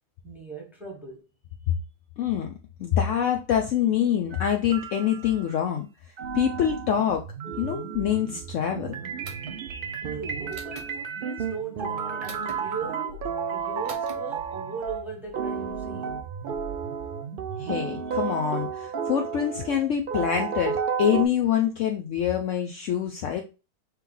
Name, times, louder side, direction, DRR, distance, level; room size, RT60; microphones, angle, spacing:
voice 1, 0.2-1.2 10.0-16.3, right 4 dB, ahead, 0.9 m, -39 dB
voice 2, 2.2-2.5 2.8-5.9 6.3-7.2 7.6-9.0 17.6-23.4, left 9 dB, 70° left, 0.8 m, -25 dB
sound 1, 4.3-5.6 6.2-21.3, right 6 dB, 90° right, 0.4 m, -32 dB
sound 2, 6.2-17.8, right 7 dB, 65° right, 0.8 m, -42 dB
sound 3, 9.2-9.6 10.5-10.9 12.2-12.6 13.9-14.2, right 3 dB, 35° right, 0.5 m, -42 dB
3.4 x 3.0 x 3.7 m
omnidirectional pair, 1.6 m